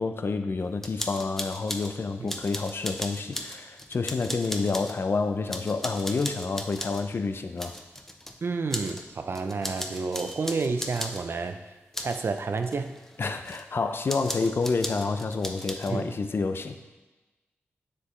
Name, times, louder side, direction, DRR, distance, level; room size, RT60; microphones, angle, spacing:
voice 1, 0.0-7.7 13.2-16.8, left 4 dB, 55° left, 8 dB, 0.5 m, -29 dB
sound 1, 0.8-1.9 2.3-5.0 5.5-7.0 7.6-8.4 8.7-9.0 9.3-11.2 11.9-12.2 12.6-13.6 14.1-15.9, left 1 dB, 10° left, 0.7 m, -37 dB
voice 2, 8.4-13.0 15.9-16.1, right 4 dB, 55° right, 8 dB, 0.5 m, -30 dB
7.3 x 6.7 x 3.2 m, 1.2 s
cardioid pair, 55°, 5 cm